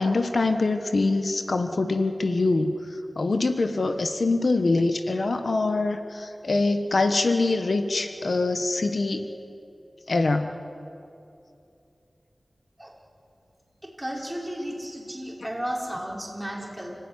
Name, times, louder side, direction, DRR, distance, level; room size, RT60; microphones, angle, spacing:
voice 1, 0.0-2.7 3.2-9.3 10.1-10.5, left 3 dB, 75° left, 7 dB, 1.2 m, -24 dB
voice 2, 14.0-16.9, equal, 10° right, -2 dB, 5.3 m, -33 dB
29.5 x 15.5 x 9.7 m, 2.7 s
wide cardioid pair, 55°, 0 cm